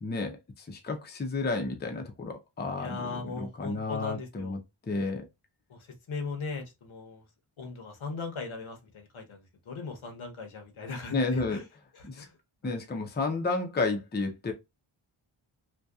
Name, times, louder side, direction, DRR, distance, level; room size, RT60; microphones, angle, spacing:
voice 1, 0.0-4.6 4.9-5.3 11.1-11.6 12.0-12.3 12.6-14.5, left 3 dB, 20° left, 0.5 m, -31 dB
voice 2, 2.8-4.6 5.7-5.8 6.1-7.2 7.6-11.6 11.9-12.3 12.6-12.8, left 4 dB, 75° left, 0.9 m, -39 dB
2.7 x 2.2 x 2.2 m
wide cardioid pair, 110°, 49 cm